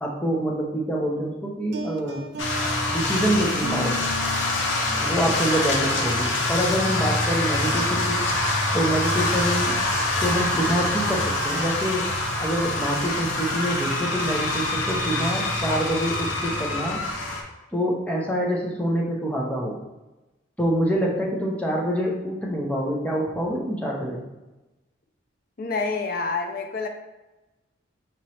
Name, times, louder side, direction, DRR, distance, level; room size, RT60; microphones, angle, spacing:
voice 1, 0.0-2.2 2.9-4.0 5.0-8.2 8.7-9.8 10.2-12.1 12.4-17.0 17.7-19.8 20.6-24.3, equal, 5° left, -3 dB, 0.7 m, -26 dB
sound 1, 1.7-5.3 5.9-6.1 6.6-6.9 7.6-8.0, equal, 60° right, 0.4 m, -36 dB
sound 2, 2.4-17.4, left 2 dB, 85° left, 0.7 m, -25 dB
voice 2, 25.6-26.9, left 4 dB, 50° left, 4 dB, 0.5 m, -27 dB
5.0 x 3.1 x 2.9 m, 1.1 s
head